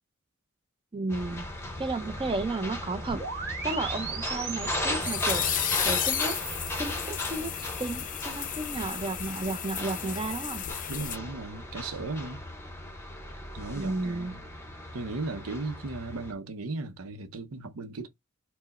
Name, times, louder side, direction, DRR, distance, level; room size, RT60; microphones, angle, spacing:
voice 1, 0.9-1.5 1.8-3.2 3.6-5.4 5.8-6.4 6.8-10.6 13.8-14.3, right 2 dB, 25° right, 0.5 m, -33 dB
sound 1, 1.1-16.3, left 1 dB, 10° left, 0.8 m, -37 dB
sound 2, 3.1-6.7, right 5 dB, 55° right, 1.7 m, -37 dB
sound 3, 4.4-11.2, left 10 dB, 40° left, 0.4 m, -33 dB
voice 2, 10.9-12.4 13.5-14.4 14.9-18.1, right 3 dB, 80° right, 0.7 m, -36 dB
4.5 x 2.1 x 4.0 m
head